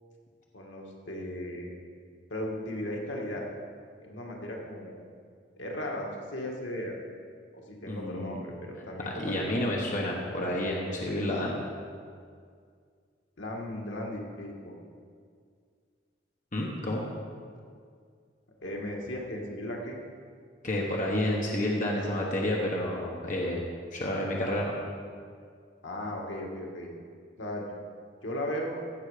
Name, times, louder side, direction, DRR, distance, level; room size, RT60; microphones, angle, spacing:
voice 1, 0.5-1.7 2.3-3.5 4.0-5.0 5.6-7.0 7.5-9.7 13.4-14.7 18.6-20.0 25.8-26.9 27.4-27.6 28.2-28.8, left 1 dB, 80° left, 0 dB, 1.8 m, -36 dB
voice 2, 7.9-8.4 9.0-11.6 16.5-17.0 20.6-24.8, left 1 dB, 40° left, -2 dB, 1.2 m, -30 dB
15.5 x 6.5 x 5.0 m, 2.1 s
head